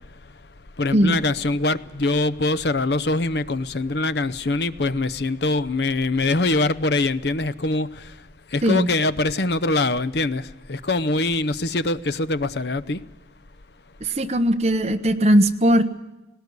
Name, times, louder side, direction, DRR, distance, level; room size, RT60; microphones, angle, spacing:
voice 1, 0.8-7.9 8.5-10.4 10.7-13.0, left 2 dB, 60° left, 14 dB, 0.8 m, -23 dB
voice 2, 14.2-15.8, equal, 35° right, 7 dB, 1.2 m, -18 dB
18.5 x 18.5 x 9.5 m, 1.0 s
head